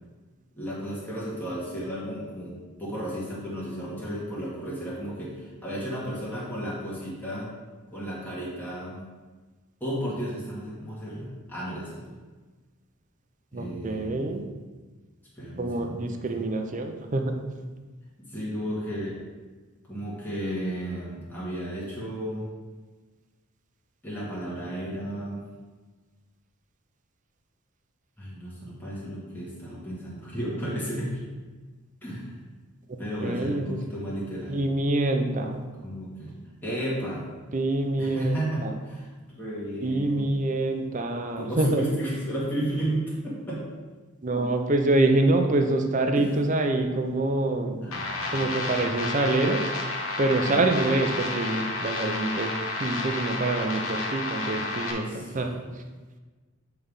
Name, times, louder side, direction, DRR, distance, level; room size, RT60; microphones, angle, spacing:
voice 1, 0.6-7.5 7.9-9.1 9.8-12.0 13.5-14.3 15.3-16.5 18.2-19.2 19.9-22.5 24.0-25.5 28.2-31.2 32.0-32.3 33.0-34.6 35.8-36.3 36.6-37.3 38.0-40.4 41.4-43.7 46.1-46.3 47.8-48.9 50.4-50.9 55.0-55.6, equal, 10° left, -7 dB, 1.6 m, -33 dB
voice 2, 13.5-14.4 15.6-17.4 32.9-33.8 34.5-35.6 37.5-38.7 39.8-41.8 44.2-47.8 48.3-49.7 50.2-55.6, right 2 dB, 35° right, 5 dB, 0.6 m, -26 dB
sound 1, 47.9-54.9, left 2 dB, 65° left, 1.1 m, -31 dB
7.7 x 3.4 x 5.4 m, 1.3 s
head